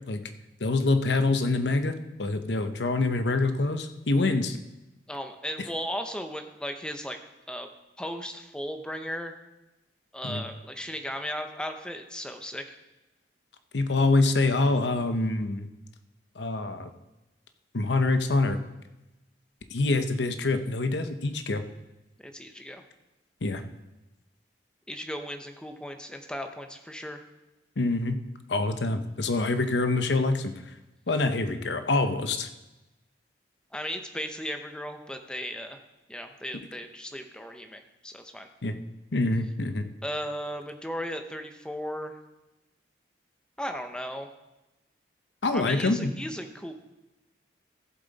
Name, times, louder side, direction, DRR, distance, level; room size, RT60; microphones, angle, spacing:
voice 1, 0.6-4.6 10.2-10.4 13.7-15.7 16.4-16.9 17.7-18.6 19.7-21.6 23.4-23.6 27.8-28.2 28.5-30.5 31.1-32.5 38.6-38.7 39.1-39.9 45.4-46.1, left 2 dB, 75° left, 9 dB, 0.8 m, -25 dB
voice 2, 5.1-7.2 7.5-7.7 8.0-9.3 10.1-12.8 22.2-22.8 24.9-27.2 33.7-35.8 36.1-38.5 40.0-42.2 43.6-44.3 45.5-46.7, equal, 5° left, 6 dB, 0.8 m, -36 dB
14.5 x 7.5 x 4.1 m, 1.0 s
head